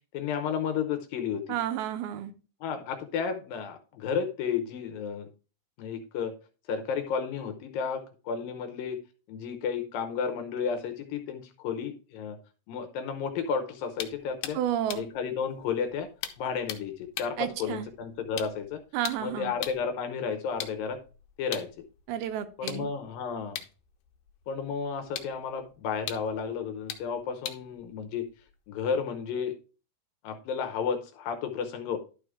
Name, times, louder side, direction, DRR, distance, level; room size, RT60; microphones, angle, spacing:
voice 1, 0.1-1.6 2.6-5.3 5.8-6.3 6.7-9.0 9.3-12.4 12.7-14.6 14.9-16.1 16.4-18.8 19.2-21.0 21.4-21.7 22.6-23.6 24.5-28.2 28.7-29.5 30.2-32.0, left 6 dB, 75° left, 7 dB, 2.4 m, -32 dB
voice 2, 1.5-2.3 14.5-15.1 17.4-17.9 18.9-19.5 22.1-22.9, right 11 dB, 85° right, 9 dB, 2.7 m, -31 dB
sound 1, 13.9-19.9 20.5-28.9, left 11 dB, 90° left, 2.7 m, -43 dB
11.5 x 4.8 x 3.6 m, 0.34 s
omnidirectional pair, 4.4 m